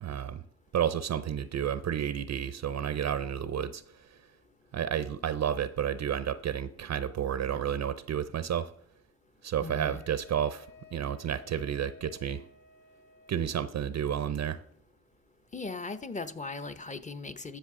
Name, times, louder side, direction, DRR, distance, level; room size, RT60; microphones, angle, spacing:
voice 1, 0.0-0.4 0.7-3.8 4.7-8.7 9.4-10.7 10.9-12.4 13.3-14.6, right 9 dB, 50° right, 0.5 m, -31 dB
voice 2, 9.6-10.0 15.5-17.6, left 3 dB, 20° left, 0.7 m, -38 dB
Wind instrument woodwind instrument, 9.9-13.7, left 4 dB, 65° left, 2.6 m, -55 dB
12.5 x 6.7 x 3.7 m
cardioid pair, 75°, 34 cm